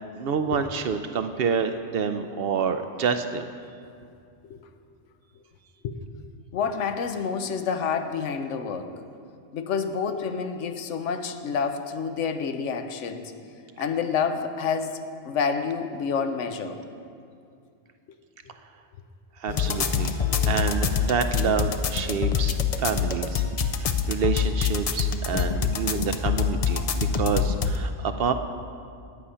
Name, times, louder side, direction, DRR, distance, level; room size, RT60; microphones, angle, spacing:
voice 1, 0.1-3.5 19.4-28.3, right 6 dB, 65° right, 9 dB, 0.7 m, -28 dB
voice 2, 6.5-9.0 9.5-13.3 13.8-15.0 15.2-16.8 25.9-26.1, left 6 dB, 80° left, 8 dB, 1.0 m, -28 dB
sound 1, 19.5-27.8, left 6 dB, 60° left, 0.4 m, -25 dB
10.5 x 8.6 x 5.6 m, 2.4 s
omnidirectional pair, 1.2 m